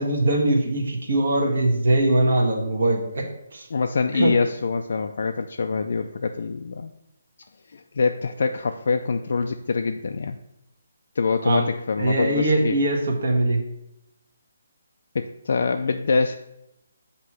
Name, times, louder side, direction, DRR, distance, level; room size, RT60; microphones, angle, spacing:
voice 1, 0.0-3.2 3.5-3.7 4.1-4.3 11.4-11.7 12.0-13.6, right 1 dB, 50° right, 0 dB, 1.4 m, -21 dB
voice 2, 3.7-6.9 7.7-10.4 11.2-12.8 15.1-16.4, left 4 dB, 50° left, 5 dB, 0.3 m, -25 dB
8.0 x 2.9 x 6.0 m, 0.85 s
hypercardioid pair, 175°, 0 cm